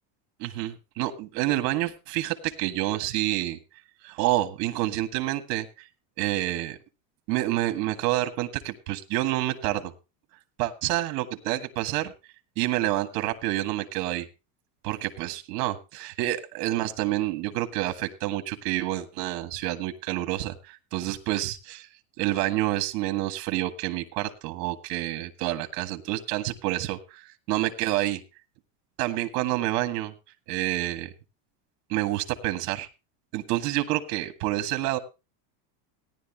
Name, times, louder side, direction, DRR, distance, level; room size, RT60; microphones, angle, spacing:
voice 1, 0.4-3.6 4.0-5.9 6.2-6.8 7.3-9.9 10.6-12.1 12.6-14.3 14.8-21.9 22.2-28.2 29.0-30.1 30.5-31.1 31.9-32.9 33.3-35.0, right 16 dB, 70° right, 8 dB, 1.9 m, -28 dB
17.5 x 11.0 x 2.9 m, 0.28 s
supercardioid pair, 130°, 47 cm